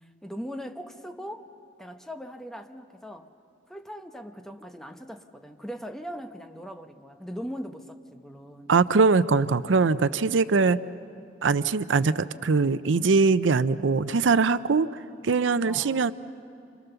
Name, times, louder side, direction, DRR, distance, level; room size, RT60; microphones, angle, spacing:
voice 1, 0.0-1.5 1.8-3.3 3.7-8.7 15.6-16.1, equal, ahead, 6 dB, 1.0 m, -40 dB
voice 2, 8.7-10.8 11.4-14.9 15.2-16.1, right 4 dB, 80° right, 15 dB, 0.6 m, -22 dB
28.0 x 26.0 x 6.9 m, 2.7 s
head